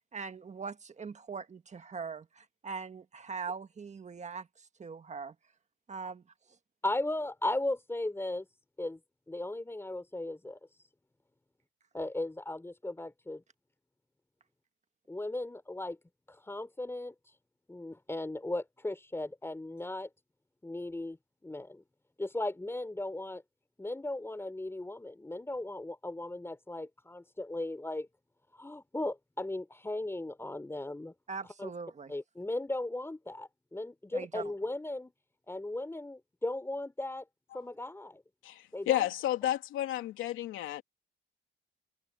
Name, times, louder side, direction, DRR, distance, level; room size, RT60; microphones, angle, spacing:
voice 1, 0.1-5.3 5.9-6.2 31.3-32.1 34.1-34.4, right 5 dB, 35° right, 1.6 m, -41 dB
voice 2, 6.8-8.5 8.8-9.0 9.3-10.6 11.9-13.4 15.1-16.0 16.3-17.1 17.7-20.1 20.6-21.2 21.4-21.8 22.2-23.4 23.8-28.1 28.5-31.1 31.6-31.7 32.1-35.1 35.5-37.2 37.5-38.2 38.7-39.1, left 2 dB, 10° left, 3.8 m, -37 dB
voice 3, 38.4-40.8, left 13 dB, 90° left, 3.1 m, -32 dB
cardioid pair, 90°, 20 cm